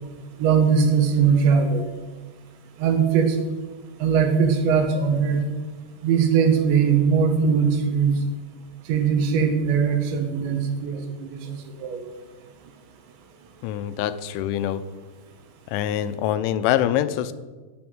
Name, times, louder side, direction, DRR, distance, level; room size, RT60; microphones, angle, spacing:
voice 1, 0.4-1.8 2.8-3.4 4.0-5.5 6.0-8.2 8.9-12.0, right 6 dB, 75° right, 5 dB, 3.7 m, -20 dB
voice 2, 13.6-14.8 15.7-17.3, left 11 dB, 90° left, 12 dB, 3.2 m, -24 dB
15.0 x 7.1 x 8.9 m, 1.3 s
omnidirectional pair, 5.3 m